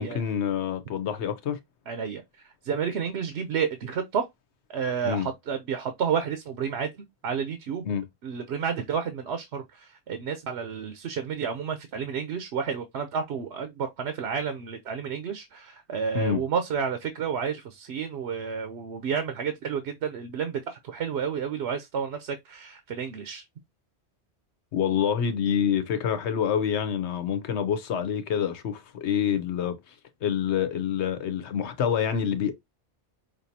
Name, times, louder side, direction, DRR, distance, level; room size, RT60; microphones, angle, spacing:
voice 1, 0.0-1.6 5.0-5.3 7.8-8.0 16.1-16.4 24.7-29.9 30.2-32.5, left 8 dB, 85° left, 1.0 m, -27 dB
voice 2, 1.9-4.3 4.7-7.8 8.2-23.4, right 7 dB, 75° right, 1.0 m, -31 dB
5.2 x 2.7 x 2.7 m
omnidirectional pair, 1.1 m